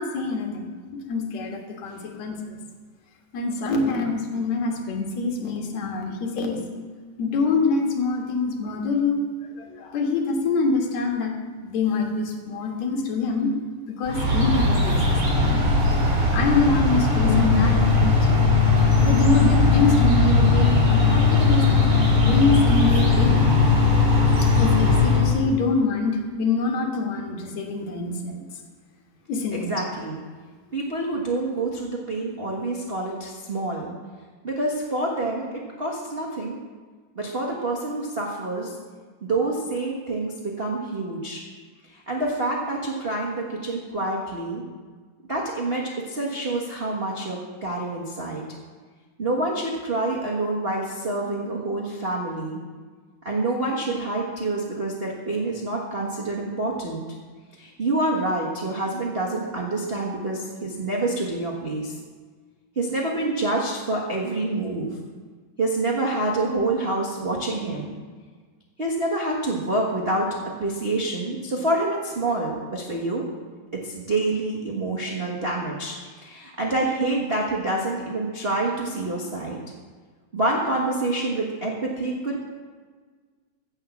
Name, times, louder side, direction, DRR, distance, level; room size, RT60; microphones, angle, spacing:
voice 1, 0.0-2.6 3.3-6.6 7.2-9.2 9.6-11.3 11.6-13.6 13.9-15.6 16.3-18.1 19.0-23.5 24.4-28.4 29.3-29.7, left 3 dB, 60° left, 1 dB, 2.6 m, -25 dB
sound 1, 14.0-25.4, equal, 30° right, 3.9 m, -21 dB
sound 2, 17.2-25.3, left 11 dB, 80° left, 2.1 m, -21 dB
voice 2, 29.5-30.2 30.7-33.9 34.4-35.4 35.8-36.6 37.1-38.7 39.2-41.4 41.9-44.6 45.3-48.4 49.2-52.6 53.2-57.0 57.6-61.9 62.7-64.9 65.6-67.9 68.8-73.3 73.7-79.6 80.3-82.4, right 2 dB, 80° right, -3 dB, 0.5 m, -27 dB
15.5 x 5.7 x 7.1 m, 1.5 s
omnidirectional pair, 3.8 m